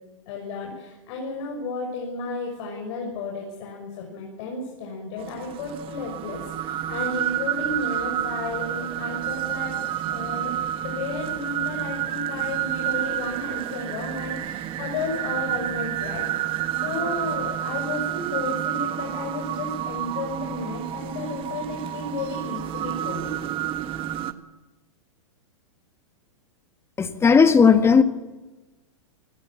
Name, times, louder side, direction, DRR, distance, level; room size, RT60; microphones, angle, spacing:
voice 1, 0.3-9.7 10.1-10.5 10.8-23.4, left 3 dB, 55° left, 0 dB, 6.3 m, -33 dB
sound 1, 5.2-24.3, right 12 dB, 30° right, 1.5 m, -29 dB
voice 2, 27.0-28.0, left 6 dB, 15° left, 9 dB, 1.6 m, -15 dB
25.0 x 20.0 x 7.5 m, 1.1 s
hypercardioid pair, 120°, 17 cm